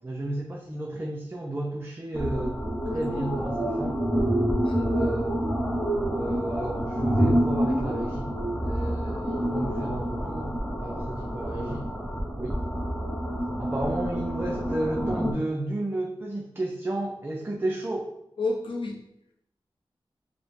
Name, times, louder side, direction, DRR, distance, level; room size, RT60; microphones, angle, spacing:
voice 1, 0.0-2.6 2.9-4.0 4.9-5.3 6.1-11.9 12.4-12.6 13.6-18.1, right 1 dB, 25° right, -1 dB, 0.5 m, -32 dB
sound 1, 2.1-15.3, equal, 5° left, 0.9 m, -28 dB
voice 2, 4.6-5.1 18.4-19.0, left 3 dB, 70° left, -1 dB, 0.6 m, -31 dB
4.9 x 2.1 x 3.4 m, 0.79 s
wide cardioid pair, 70°, 9 cm